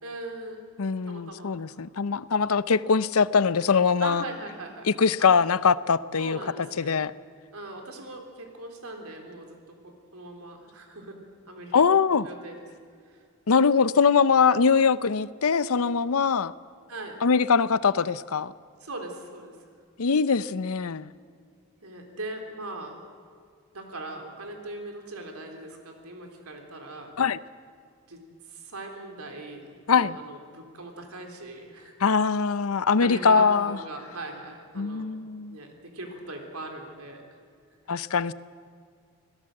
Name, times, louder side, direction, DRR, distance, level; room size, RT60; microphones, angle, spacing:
voice 1, 0.0-0.7 1.0-1.8 4.0-4.9 5.2-5.3 6.2-7.0 7.5-11.9 12.2-12.6 16.9-17.2 18.8-19.6 21.8-23.0 23.7-27.2 28.1-31.9 33.0-35.1 35.5-37.2, right 2 dB, 85° right, 3 dB, 3.7 m, -40 dB
voice 2, 0.8-4.2 4.9-6.4 6.8-7.1 11.7-12.3 13.5-16.5 17.2-18.5 20.0-21.1 27.2-27.4 29.9-30.2 32.0-33.8 34.8-35.6 37.9-38.3, left 5 dB, 80° left, 17 dB, 0.6 m, -22 dB
26.0 x 17.0 x 7.8 m, 2.2 s
head